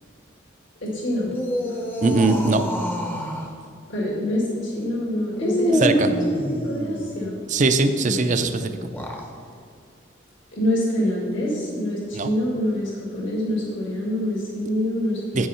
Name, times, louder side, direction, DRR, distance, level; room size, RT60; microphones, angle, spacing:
voice 1, 0.8-1.3 1.6-1.8 3.9-7.4 8.0-8.4 10.5-15.5, equal, 70° left, -6 dB, 2.2 m, -26 dB
sound 1, 1.2-3.5 5.4-7.2 8.8-9.3, left 1 dB, 10° left, 0.7 m, -27 dB
voice 2, 2.0-2.6 5.8-6.1 7.5-8.7 12.1-12.3 15.3-15.5, right 3 dB, 40° right, 9 dB, 0.5 m, -20 dB
9.1 x 5.5 x 5.6 m, 2.3 s
head